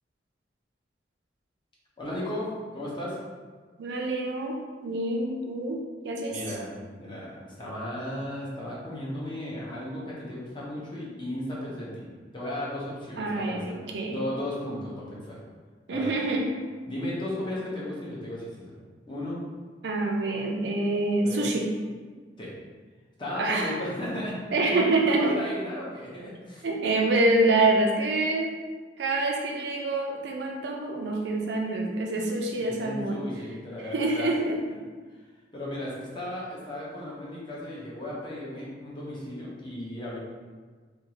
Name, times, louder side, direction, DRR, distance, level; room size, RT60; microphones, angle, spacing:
voice 1, 2.0-3.2 6.3-12.1 12.3-13.7 14.1-15.4 15.9-16.1 16.9-18.7 19.1-19.4 20.2-20.4 21.2-21.5 22.4-22.5 23.2-24.3 24.7-26.7 32.5-34.3 34.6-34.8 35.5-40.2, left 1 dB, 25° left, -6 dB, 0.7 m, -35 dB
voice 2, 3.8-6.4 13.2-14.2 15.9-16.5 19.8-21.7 23.4-23.8 24.5-25.3 26.6-28.5 29.0-33.2 33.8-34.6, right 2 dB, 75° right, 0 dB, 0.4 m, -26 dB
2.5 x 2.4 x 2.9 m, 1.5 s
head